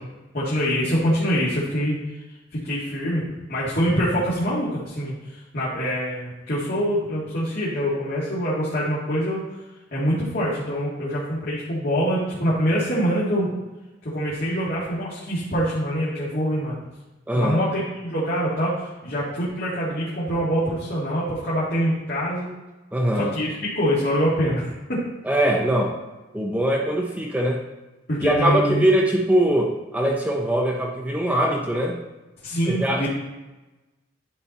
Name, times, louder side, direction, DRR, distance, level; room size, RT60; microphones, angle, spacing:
voice 1, 0.3-2.0 2.5-3.2 3.5-9.5 9.9-13.5 14.0-16.8 17.3-22.5 23.2-25.1 28.1-28.9 32.4-33.1, equal, 55° left, -8 dB, 2.0 m, -24 dB
voice 2, 17.3-17.6 22.9-23.3 25.2-26.0 26.3-27.6 28.2-32.0 32.7-33.1, right 1 dB, 10° right, -1 dB, 0.7 m, -22 dB
10.5 x 4.3 x 4.1 m, 1.1 s
head